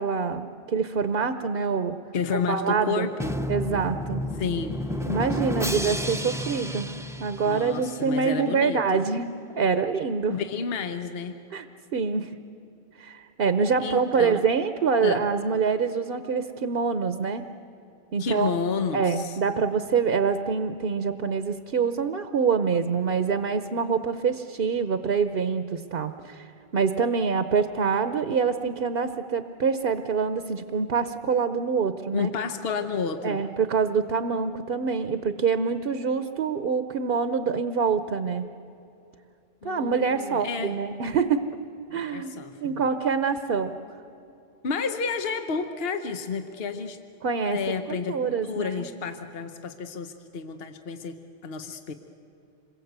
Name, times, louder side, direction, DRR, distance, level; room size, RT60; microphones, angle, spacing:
voice 1, 0.0-2.0 2.3-3.1 3.5-4.2 5.1-6.9 7.2-9.3 9.6-10.3 11.5-11.7 11.9-12.3 13.0-17.5 18.1-18.5 18.9-26.5 26.7-32.3 33.2-38.5 39.6-41.5 41.9-42.3 42.6-43.7 47.2-47.6 47.9-48.9, right 5 dB, 65° right, 10 dB, 1.0 m, -25 dB
voice 2, 2.1-3.4 4.4-4.8 7.4-9.0 10.3-11.4 13.8-14.4 15.0-15.2 18.2-19.4 32.1-33.4 39.6-40.8 41.9-42.8 44.6-47.0 47.4-51.9, left 5 dB, 70° left, 7 dB, 1.1 m, -31 dB
Drum, 3.2-8.1, left 1 dB, 5° right, 0.5 m, -31 dB
27.0 x 22.0 x 8.0 m, 2.7 s
omnidirectional pair, 1.0 m